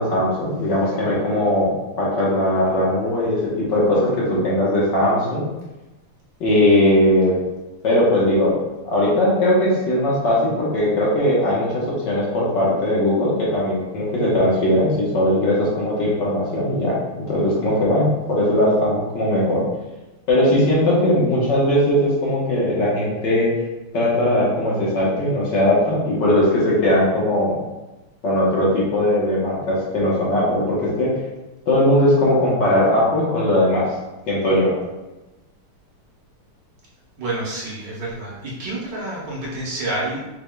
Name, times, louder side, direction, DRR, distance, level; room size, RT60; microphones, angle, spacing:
voice 1, 0.0-1.7 2.0-5.5 6.4-7.4 7.8-8.5 8.9-17.0 17.3-19.6 20.3-23.5 23.9-27.6 28.2-31.1 31.7-33.9 34.3-34.7, left 1 dB, 60° left, -6 dB, 1.7 m, -19 dB
voice 2, 37.2-40.2, right 2 dB, 60° right, -5 dB, 1.4 m, -28 dB
6.5 x 3.5 x 2.2 m, 1.1 s
omnidirectional pair, 2.4 m